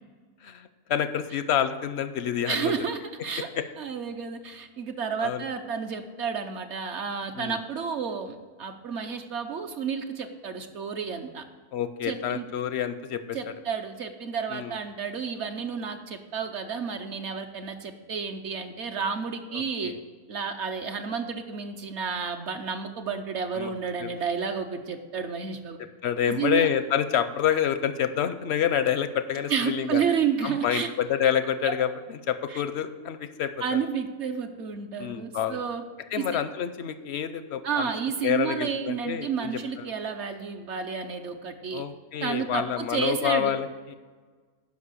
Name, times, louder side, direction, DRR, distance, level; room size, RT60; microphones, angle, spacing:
voice 1, 0.4-2.7 5.2-5.5 7.4-7.6 11.7-13.4 14.5-14.7 19.5-20.0 23.5-23.7 24.0-24.1 26.0-30.0 30.4-33.8 35.0-35.6 36.1-37.9 38.2-39.9 41.7-43.9, left 9 dB, 65° left, 11 dB, 0.7 m, -28 dB
voice 2, 2.5-3.5 3.8-11.4 12.0-12.4 13.3-19.9 20.3-25.8 26.3-26.7 29.5-30.9 32.5-32.6 33.6-35.8 36.2-36.3 37.6-41.8 42.2-43.5, right 6 dB, 60° right, 6 dB, 0.9 m, -31 dB
11.5 x 5.3 x 6.7 m, 1.4 s
omnidirectional pair, 1.5 m